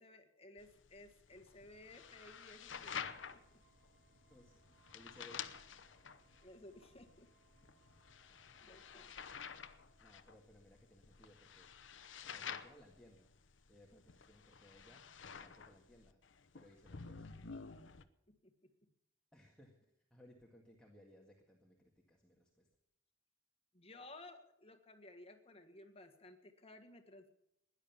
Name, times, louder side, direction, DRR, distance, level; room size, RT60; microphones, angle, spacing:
voice 1, 0.0-3.0 3.3-3.6 6.4-7.3 8.6-9.1 18.3-18.9 23.7-27.3, left 2 dB, 30° left, 6 dB, 1.6 m, -57 dB
sound 1, 0.6-18.0, left 7 dB, 70° left, 0.9 m, -51 dB
sound 2, 1.5-10.1, right 5 dB, 20° right, 3.6 m, -79 dB
sound 3, 2.8-14.6, right 2 dB, 50° right, 1.8 m, -75 dB
voice 2, 4.3-4.6 4.9-5.5 10.0-11.7 12.2-13.3 13.7-15.0 15.4-16.2 16.5-17.3 19.3-22.7, left 1 dB, 5° left, -2 dB, 1.8 m, -62 dB
16.5 x 11.0 x 7.1 m, 0.81 s
head